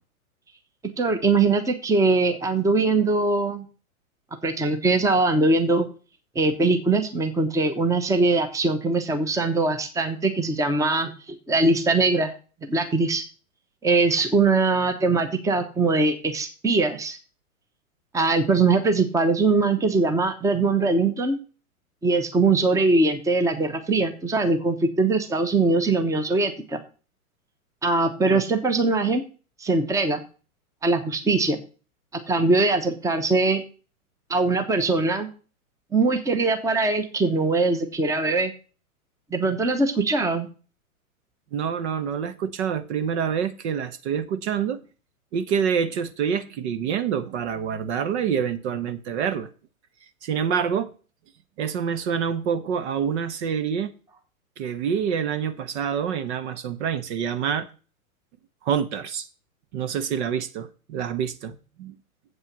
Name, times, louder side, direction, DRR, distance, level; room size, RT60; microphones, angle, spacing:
voice 1, 1.0-3.7 4.4-5.9 6.3-11.1 11.5-12.3 12.6-13.2 13.8-17.2 18.1-21.4 22.0-26.8 27.8-29.2 29.6-30.2 30.8-31.6 32.1-33.6 34.3-35.3 35.9-38.5 39.3-40.5, right 3 dB, 5° right, 1.0 m, -22 dB
voice 2, 41.5-44.8 45.3-49.5 50.2-50.9 51.6-53.9 54.6-57.7 58.6-59.3 59.7-62.0, right 7 dB, 50° right, 1.1 m, -27 dB
7.9 x 5.5 x 7.3 m
hypercardioid pair, 115°, 43 cm